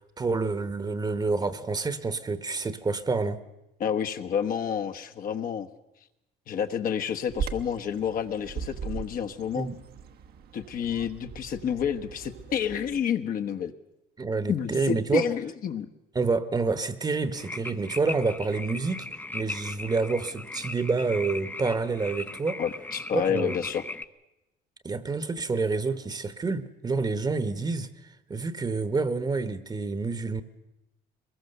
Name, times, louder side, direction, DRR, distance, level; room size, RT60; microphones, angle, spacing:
voice 1, 0.0-3.4 9.5-9.8 14.2-15.3 16.1-19.1 19.3-22.6 23.1-23.5 24.8-27.9 28.3-30.4, right 4 dB, 25° right, 1.1 m, -28 dB
voice 2, 3.8-5.7 6.5-9.7 10.5-13.7 14.5-15.9 22.6-23.8, left 8 dB, 60° left, 1.3 m, -29 dB
Bird vocalization bird call bird song, 7.3-13.0, right 6 dB, 65° right, 1.3 m, -39 dB
sound 1, 17.3-24.0, left 2 dB, 10° left, 0.7 m, -38 dB
22.5 x 21.0 x 6.7 m
cardioid pair, 110°, 17 cm